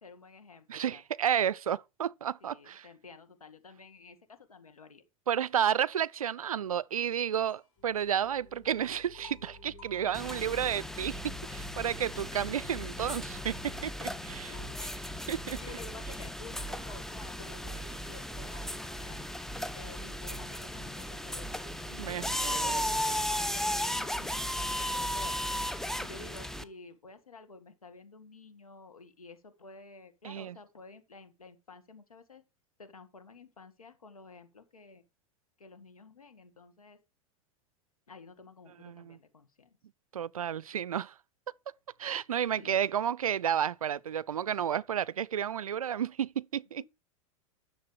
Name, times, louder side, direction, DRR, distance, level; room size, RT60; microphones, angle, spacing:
voice 1, 0.0-1.0 2.4-5.0 14.5-14.8 15.6-19.3 19.8-21.5 21.9-25.4 26.0-32.4 32.8-35.0 35.6-37.0 38.1-39.8 42.5-42.8 46.7-46.9, left 4 dB, 90° left, 1.8 m, -51 dB
voice 2, 0.7-2.9 5.3-14.5 14.8-14.9 15.3-15.6 22.0-22.8 30.2-30.6 38.8-39.2 40.1-41.1 42.0-46.9, right 9 dB, 85° right, 0.4 m, -32 dB
sound 1, 7.1-7.8 8.0-12.7 13.1-26.9, left 1 dB, 60° left, 4.7 m, -58 dB
sound 2, 7.8-17.1 17.4-17.7, left 3 dB, 35° left, 3.6 m, -51 dB
sound 3, 10.1-26.6, equal, ahead, 0.7 m, -36 dB
11.0 x 6.7 x 4.8 m
hypercardioid pair, 95°, 18 cm